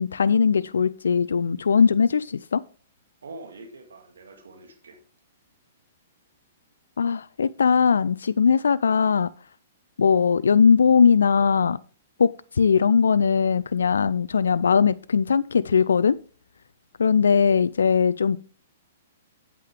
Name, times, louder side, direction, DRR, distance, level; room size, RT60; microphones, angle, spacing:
voice 1, 0.0-2.6 7.0-9.3 10.0-11.8 12.2-16.2 17.0-18.4, left 6 dB, 80° left, 0.3 m, -20 dB
voice 2, 3.2-5.0 17.3-17.5, right 2 dB, 80° right, 2.0 m, -44 dB
8.4 x 8.4 x 3.4 m
hypercardioid pair, 120°, 0 cm